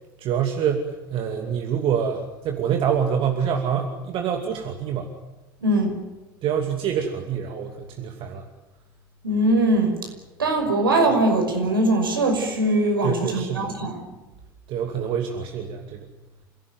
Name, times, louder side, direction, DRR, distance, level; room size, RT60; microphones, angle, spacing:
voice 1, 0.2-5.1 6.4-8.5 13.0-13.7 14.7-16.1, right 8 dB, 50° right, 3 dB, 2.6 m, -26 dB
voice 2, 5.6-6.0 9.2-9.9 10.4-14.0, right 1 dB, 85° right, 3 dB, 5.7 m, -21 dB
29.0 x 17.0 x 9.5 m, 1.1 s
figure-of-eight pair, 70°, 12 cm